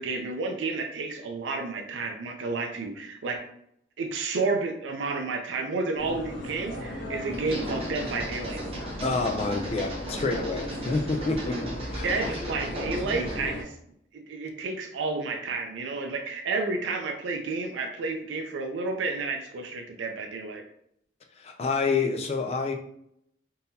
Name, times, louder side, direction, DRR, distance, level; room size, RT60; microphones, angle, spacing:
voice 1, 0.0-3.4 4.0-8.6 12.0-13.7 14.1-20.6, right 3 dB, 85° right, 0.4 m, -31 dB
sound 1, 6.0-13.6, equal, 75° left, 1.2 m, -36 dB
sound 2, 7.3-13.5, equal, 30° right, 0.7 m, -38 dB
voice 2, 9.0-11.6 11.9-12.2 21.4-22.7, left 4 dB, 35° left, 0.4 m, -28 dB
3.8 x 2.8 x 2.7 m
head